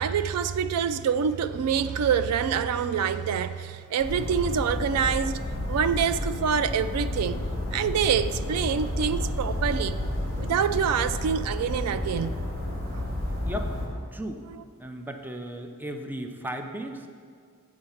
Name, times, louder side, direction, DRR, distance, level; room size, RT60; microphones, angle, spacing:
voice 1, 0.0-7.4 7.7-10.0 10.4-12.4 12.9-13.1, right 7 dB, 85° right, 0.3 m, -26 dB
sound 1, 4.0-11.3, left 3 dB, 60° left, 0.7 m, -41 dB
sound 2, 4.0-13.9, left 1 dB, 45° right, 2.5 m, -31 dB
voice 2, 14.1-14.4 14.8-17.1, equal, 10° right, 0.5 m, -35 dB
7.7 x 4.9 x 7.1 m
head